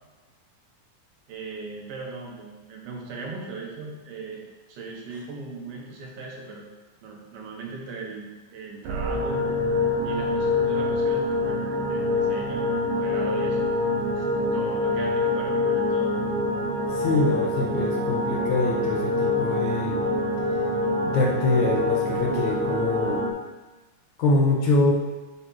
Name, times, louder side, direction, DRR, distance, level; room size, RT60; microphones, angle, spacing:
voice 1, 1.3-6.7 7.0-9.5 10.0-13.7 14.2-16.1, right 3 dB, 90° right, -1 dB, 3.1 m, -38 dB
sound 1, 8.8-23.3, left 2 dB, 70° right, 2.5 m, -25 dB
voice 2, 16.9-20.0 21.0-23.3 24.2-24.9, left 2 dB, 70° left, -1 dB, 2.0 m, -24 dB
11.0 x 4.0 x 4.6 m, 1.2 s
omnidirectional pair, 4.0 m